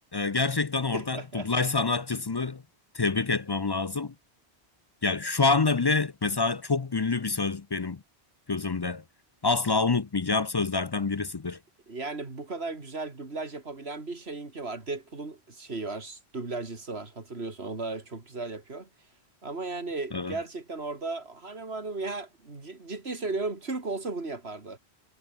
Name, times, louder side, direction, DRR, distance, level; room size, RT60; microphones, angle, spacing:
voice 1, 0.1-2.6 2.9-4.1 5.0-8.0 8.5-9.0 9.4-11.6 20.1-20.3, left 4 dB, 30° left, 0.4 m, -27 dB
voice 2, 0.9-1.5 11.9-18.9 19.4-24.8, right 3 dB, 70° right, 3.2 m, -35 dB
omnidirectional pair, 1.1 m